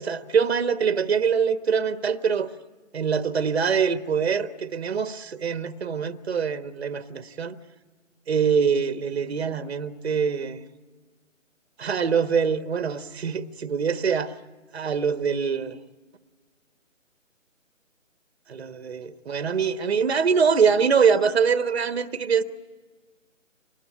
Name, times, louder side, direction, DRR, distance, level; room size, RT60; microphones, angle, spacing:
voice 1, 0.0-2.5 2.9-7.6 8.3-10.6 11.8-14.3 14.7-15.8 18.5-22.4, right 6 dB, 50° right, 1.3 m, -24 dB
25.5 x 20.5 x 10.0 m
figure-of-eight pair, 160°, 39 cm